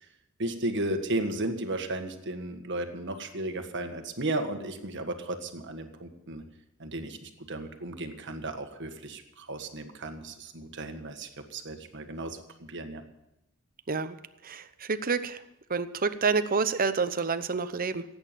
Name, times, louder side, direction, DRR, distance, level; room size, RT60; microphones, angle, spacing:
voice 1, 0.4-6.4 6.8-12.4 12.7-13.0, right 2 dB, 60° right, 7 dB, 1.6 m, -34 dB
voice 2, 14.4-15.4 15.7-18.0, right 5 dB, 45° right, 11 dB, 0.8 m, -28 dB
16.5 x 8.9 x 7.5 m, 0.90 s
head